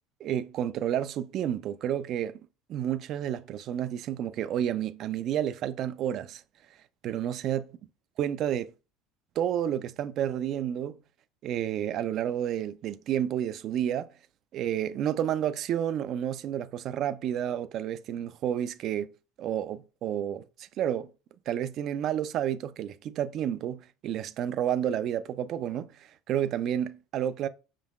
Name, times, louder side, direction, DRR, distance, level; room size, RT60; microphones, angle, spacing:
voice 1, 0.2-2.4 2.7-6.4 7.0-7.7 8.2-8.7 9.4-11.0 11.4-14.1 14.5-19.1 19.4-21.1 21.5-27.5, right 10 dB, 50° right, 0.4 m, -30 dB
5.2 x 3.7 x 2.4 m
hypercardioid pair, 85°, 0 cm